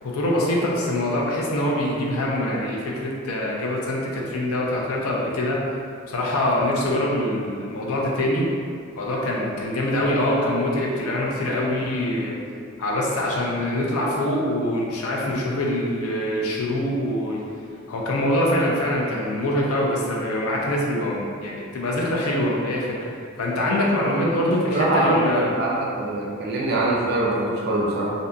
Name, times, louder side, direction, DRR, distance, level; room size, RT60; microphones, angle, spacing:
voice 1, 0.0-5.6 6.1-8.5 9.0-12.4 12.8-17.4 17.9-25.5, left 1 dB, 75° left, -3 dB, 0.5 m, -24 dB
voice 2, 24.0-28.1, right 2 dB, 45° right, -4 dB, 0.4 m, -24 dB
2.6 x 2.5 x 2.2 m, 2.3 s
head